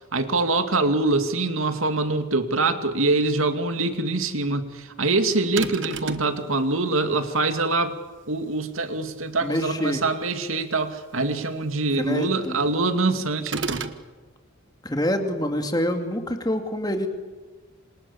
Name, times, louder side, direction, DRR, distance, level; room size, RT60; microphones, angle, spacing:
voice 1, 0.1-8.0 8.3-13.8, right 3 dB, 80° right, 8 dB, 2.5 m, -24 dB
sound 1, 5.6-6.4 13.5-14.0, right 4 dB, 60° right, 1.5 m, -30 dB
voice 2, 9.4-10.0 12.0-12.6 14.8-17.1, equal, 20° left, 5 dB, 2.5 m, -26 dB
28.0 x 27.5 x 7.2 m, 1.4 s
head